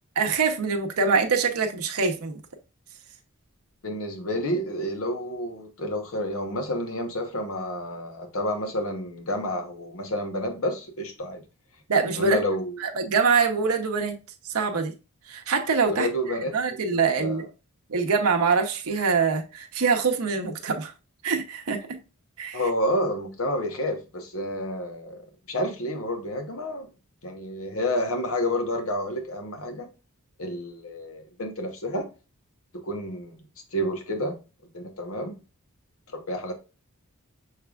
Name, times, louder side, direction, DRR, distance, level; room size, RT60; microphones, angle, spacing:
voice 1, 0.2-2.4 11.9-12.4 12.8-14.2 14.5-14.9 15.3-17.5 17.9-20.9 21.2-22.0 22.4-22.6, right 5 dB, 80° right, 0.8 m, -24 dB
voice 2, 3.8-11.4 12.2-12.8 15.9-17.4 22.5-25.2 25.5-26.9 27.2-29.9 30.4-32.1 32.8-33.3 33.7-34.3 34.7-35.3 36.1-36.5, left 1 dB, 70° left, 1.0 m, -29 dB
6.5 x 3.3 x 2.3 m
head